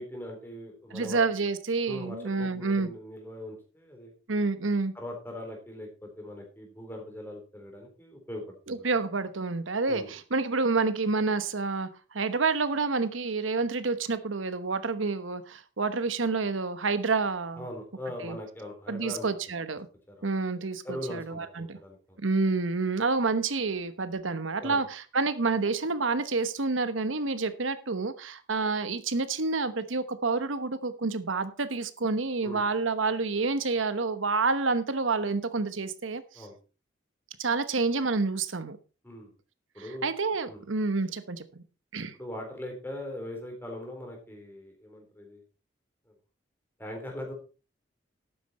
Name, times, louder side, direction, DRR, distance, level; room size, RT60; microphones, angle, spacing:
voice 1, 0.0-1.2 1.9-4.1 4.9-8.8 9.9-10.1 17.6-19.3 20.1-20.3 20.8-22.2 24.6-24.8 32.4-32.6 36.3-36.6 39.0-39.3 39.7-40.1 40.5-40.6 42.1-45.4 46.1-46.2 46.8-47.3, left 1 dB, 10° left, 3.7 m, -40 dB
voice 2, 0.9-2.9 4.3-4.9 8.7-17.6 18.2-18.4 18.9-19.9 20.2-21.8 22.2-36.5 37.4-38.8 40.0-41.6 41.9-42.1, right 4 dB, 90° right, 1.1 m, -28 dB
12.0 x 9.3 x 4.2 m
head